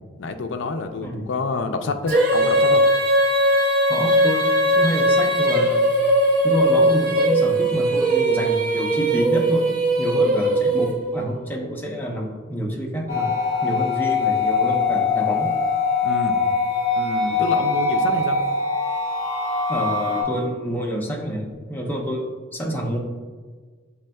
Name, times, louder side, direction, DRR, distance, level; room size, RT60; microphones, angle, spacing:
voice 1, 0.2-2.8 16.0-16.4 17.0-18.4, left 4 dB, 65° left, 7 dB, 0.4 m, -28 dB
voice 2, 1.0-1.3 3.9-5.9 6.4-13.3 13.6-15.5 19.7-22.3 22.5-23.0, equal, 10° left, -1 dB, 0.6 m, -27 dB
Female singing, 2.1-11.2, right 1 dB, 45° right, 0.7 m, -19 dB
sound 1, 13.1-20.2, left 4 dB, 35° left, 1.2 m, -22 dB
6.3 x 3.4 x 2.2 m, 1.4 s
head